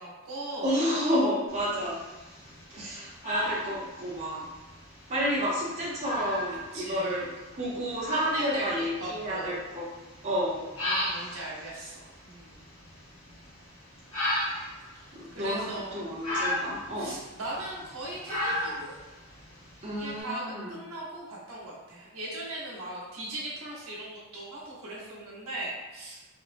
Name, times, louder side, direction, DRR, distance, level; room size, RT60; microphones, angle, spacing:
voice 1, 0.0-0.7 1.7-1.8 6.7-7.4 8.1-9.5 10.8-12.6 14.9-15.9 17.0-19.0 20.0-26.2, right 1 dB, 85° right, -5 dB, 0.9 m, -39 dB
voice 2, 0.6-2.0 2.7-4.4 5.1-7.3 7.5-9.9 10.2-10.7 11.2-11.4 15.1-17.1 19.8-20.8, equal, 35° right, -7 dB, 0.6 m, -30 dB
sound 1, 1.5-20.2, left 1 dB, 75° left, 1.1 m, -36 dB
3.6 x 2.1 x 2.5 m, 1.1 s
head